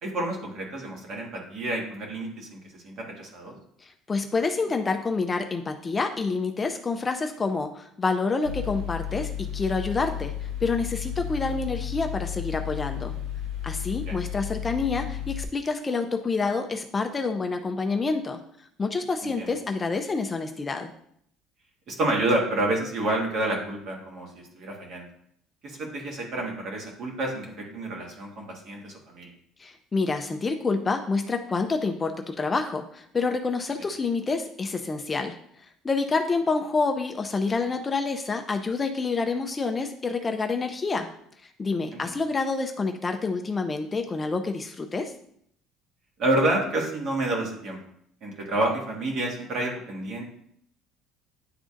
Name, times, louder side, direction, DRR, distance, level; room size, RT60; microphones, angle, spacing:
voice 1, 0.0-2.6 2.8-3.6 14.1-14.2 19.2-19.5 21.9-25.1 25.6-29.3 41.9-42.2 46.2-47.8 48.2-50.2, right 1 dB, 50° right, 0 dB, 1.7 m, -29 dB
voice 2, 3.8-13.1 13.6-18.4 18.8-20.9 29.6-35.4 35.8-41.1 41.6-45.1, left 4 dB, 20° left, 5 dB, 0.4 m, -28 dB
Mechanical fan, 8.5-15.4, left 10 dB, 85° right, 1.0 m, -33 dB
10.0 x 3.8 x 2.5 m, 0.67 s
cardioid pair, 155°, 0 cm